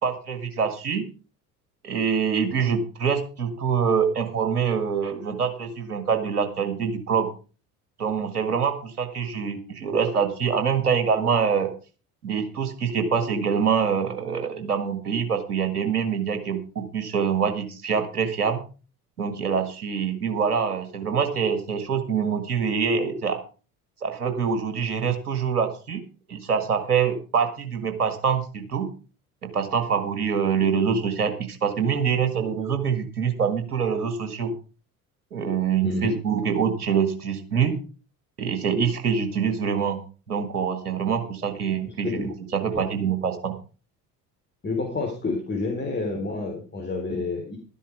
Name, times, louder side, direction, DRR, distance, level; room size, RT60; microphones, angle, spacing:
voice 1, 0.0-1.0 1.8-7.3 8.0-11.7 12.2-18.6 19.2-23.4 24.0-26.0 26.3-28.9 29.5-34.5 35.3-37.8 38.4-40.0 40.3-43.5, right 6 dB, 85° right, 8 dB, 1.8 m, -25 dB
voice 2, 41.8-42.3 42.7-42.9 44.6-47.6, left 3 dB, 25° left, 1 dB, 3.6 m, -29 dB
12.5 x 10.0 x 4.9 m, 0.36 s
figure-of-eight pair, 60°, 45 cm